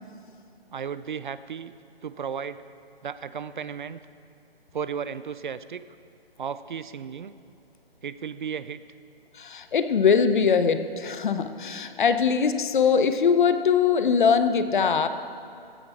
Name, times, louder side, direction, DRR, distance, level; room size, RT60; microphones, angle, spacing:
voice 1, 0.7-1.7 2.0-2.6 3.0-4.0 4.7-5.8 6.4-7.3 8.0-8.8, right 7 dB, 55° right, 15 dB, 0.5 m, -34 dB
voice 2, 9.3-15.1, left 6 dB, 50° left, 10 dB, 0.8 m, -22 dB
15.5 x 9.3 x 4.4 m, 2.6 s
hypercardioid pair, 155°, 31 cm